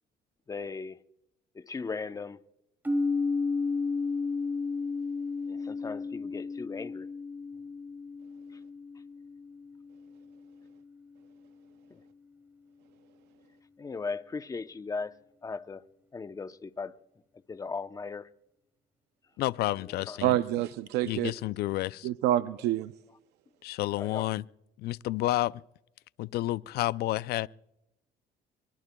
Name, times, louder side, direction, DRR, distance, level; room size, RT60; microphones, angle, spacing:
voice 1, 0.5-1.0 1.5-2.4 5.5-7.1 11.9-12.0 13.8-15.1 15.4-15.8 16.1-17.0 17.5-18.3 19.8-20.2 24.0-24.3, left 4 dB, 20° left, 0.7 m, -38 dB
sound 1, 2.8-10.7, left 4 dB, 10° right, 2.7 m, -33 dB
voice 2, 19.4-20.3 21.1-22.1 23.6-24.4 24.8-25.6 26.2-27.5, left 16 dB, 70° left, 0.4 m, -30 dB
voice 3, 20.2-21.3 22.0-22.9, right 13 dB, 85° right, 0.5 m, -27 dB
24.0 x 23.5 x 2.3 m
cardioid pair, 110°, 17 cm